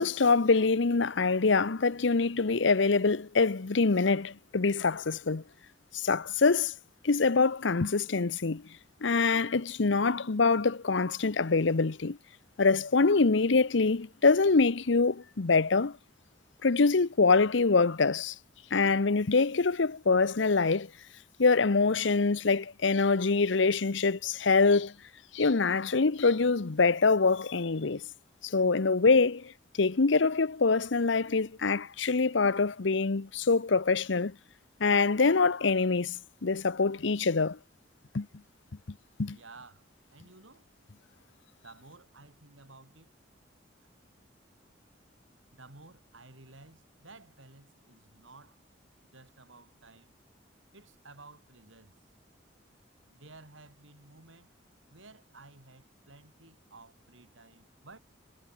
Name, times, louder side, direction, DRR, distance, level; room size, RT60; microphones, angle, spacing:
voice 1, 0.0-5.4 5.9-6.7 7.0-8.6 9.0-12.2 12.6-16.0 16.6-18.3 18.7-20.9 21.4-24.9 25.3-28.0 28.4-29.5 29.8-34.3 34.8-37.6 38.1-38.3 39.2-39.4, left 4 dB, 75° left, 0.8 m, -25 dB
voice 2, 39.3-40.7 41.6-43.1 45.5-48.6 49.0-50.1 50.7-52.0 53.1-54.5 54.9-58.0, right 3 dB, 90° right, 5.0 m, -54 dB
head